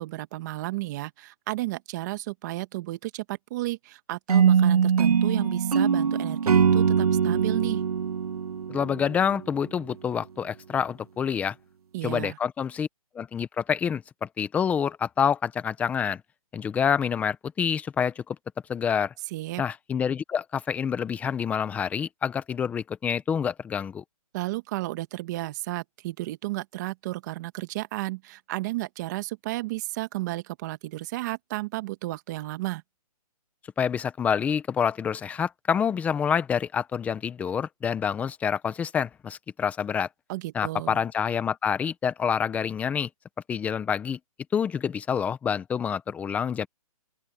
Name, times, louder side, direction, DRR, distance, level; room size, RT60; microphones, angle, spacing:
voice 1, 0.0-7.8 11.9-12.4 19.3-19.6 24.3-32.8 40.3-41.0, right 18 dB, 30° right, 1.6 m, -33 dB
sound 1, 4.3-9.4, right 7 dB, 75° right, 1.8 m, -22 dB
voice 2, 8.7-11.5 12.0-12.9 13.1-16.2 16.5-18.4 18.7-19.1 19.6-24.0 33.8-40.1 40.5-43.1 43.5-44.2 44.5-46.7, left 7 dB, 5° left, 0.9 m, -27 dB
open air
hypercardioid pair, 160°, 19 cm